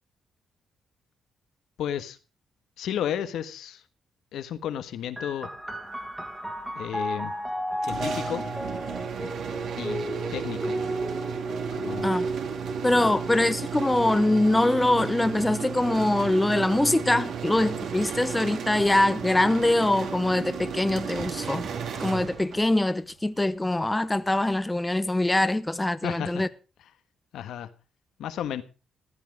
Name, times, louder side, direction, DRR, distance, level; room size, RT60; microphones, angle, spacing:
voice 1, 1.8-2.2 2.8-3.8 4.3-5.5 6.7-7.3 7.8-8.4 9.2-9.3 9.8-10.0 10.3-10.8 11.7-12.1 13.0-13.1 26.0-26.5 27.3-27.7 28.2-28.6, left 10 dB, 85° left, 1.3 m, -32 dB
sound 1, 5.2-18.4 19.3-20.0, right 1 dB, 5° right, 1.8 m, -35 dB
sound 2, 7.8-22.8, right 7 dB, 65° right, 2.4 m, -34 dB
voice 2, 12.8-21.7 22.0-26.5, left 1 dB, 10° left, 0.7 m, -23 dB
15.0 x 12.5 x 4.9 m
cardioid pair, 130°, 0 cm